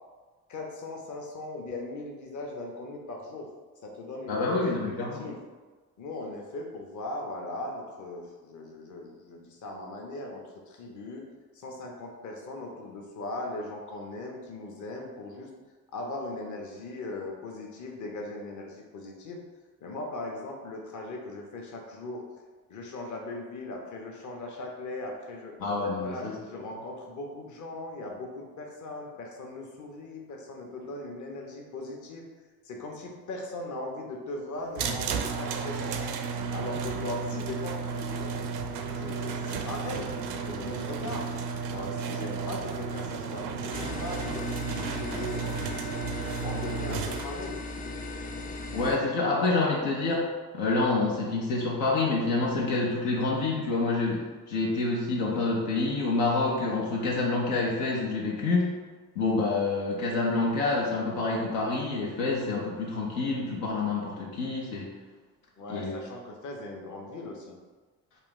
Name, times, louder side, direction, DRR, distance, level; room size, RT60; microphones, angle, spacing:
voice 1, 0.5-3.5 3.8-5.4 6.0-11.2 11.5-15.5 15.9-19.4 19.8-22.2 22.7-25.6 26.0-32.3 32.6-36.1 36.5-38.3 38.9-41.3 41.7-45.5 46.4-47.6 65.6-67.6, left 2 dB, 40° left, 0 dB, 0.8 m, -39 dB
voice 2, 4.3-5.3 25.6-26.3 48.7-50.3 50.5-58.7 59.2-64.9 65.7-66.0, left 3 dB, 75° left, -3 dB, 0.7 m, -27 dB
sound 1, 34.8-47.2, right 5 dB, 60° right, 0.5 m, -33 dB
sound 2, 43.7-49.0, left 2 dB, 20° left, 0.4 m, -37 dB
3.3 x 2.4 x 3.8 m, 1.3 s
hypercardioid pair, 40°, 46 cm